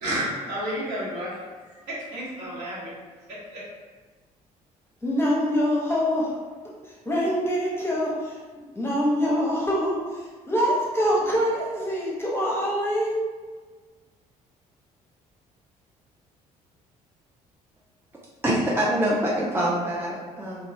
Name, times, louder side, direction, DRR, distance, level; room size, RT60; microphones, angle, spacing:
voice 1, 0.0-1.3 1.7-2.9 3.5-3.6, right 1 dB, 60° right, -8 dB, 1.1 m, -31 dB
voice 2, 5.0-6.3 6.9-8.4 8.8-13.2, equal, 10° left, -5 dB, 0.8 m, -25 dB
voice 3, 18.4-20.7, right 1 dB, 10° right, -5 dB, 0.4 m, -25 dB
2.8 x 2.1 x 2.6 m, 1.4 s
figure-of-eight pair, 50°, 20 cm